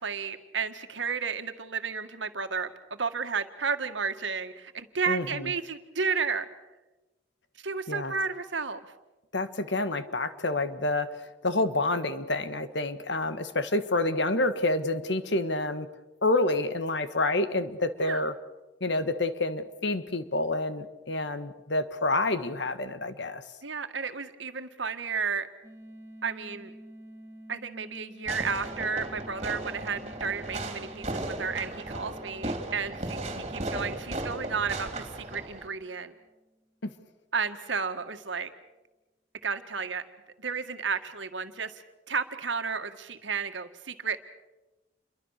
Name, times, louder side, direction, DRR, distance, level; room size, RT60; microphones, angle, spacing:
voice 1, 0.0-6.5 7.6-8.8 18.0-18.2 23.6-25.5 26.2-26.7 27.5-36.1 37.3-38.5 39.4-40.1 40.4-44.2, right 5 dB, 80° right, 8 dB, 1.9 m, -32 dB
voice 2, 5.1-5.5 7.9-8.1 9.3-15.9 16.2-18.3 18.8-23.4 36.8-36.9, left 2 dB, 65° left, 11 dB, 1.7 m, -28 dB
sound 1, 25.6-36.3, right 1 dB, 15° right, 2.3 m, -50 dB
Fireworks, 28.3-35.7, right 2 dB, 35° right, 3.1 m, -36 dB
28.5 x 23.0 x 6.7 m, 1.1 s
head